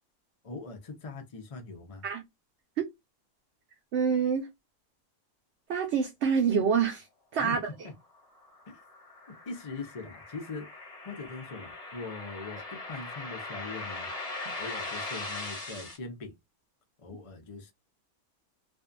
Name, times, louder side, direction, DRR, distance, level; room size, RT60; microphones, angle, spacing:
voice 1, 0.4-2.0 7.4-7.6 8.7-8.8 9.5-10.7 11.0-14.1 14.6-16.3 17.0-17.7, left 3 dB, 65° left, 0.3 m, -41 dB
voice 2, 3.9-4.5 5.7-7.1 7.3-7.6, right 6 dB, 60° right, 0.7 m, -26 dB
sound 1, 8.1-16.0, left 2 dB, 30° left, 0.9 m, -40 dB
2.6 x 2.3 x 2.4 m
omnidirectional pair, 1.5 m